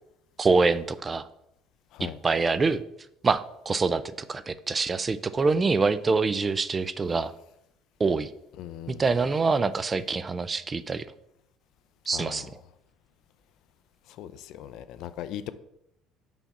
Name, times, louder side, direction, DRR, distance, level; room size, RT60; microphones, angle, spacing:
voice 1, 0.4-1.3 2.0-2.8 3.2-4.0 4.3-7.3 8.0-8.3 8.9-11.1 12.1-12.5, right 4 dB, 20° right, 0.3 m, -25 dB
voice 2, 8.6-9.0 12.1-12.5 14.1-15.5, left 11 dB, 60° left, 0.4 m, -39 dB
5.7 x 4.2 x 5.8 m
cardioid pair, 140°, 0 cm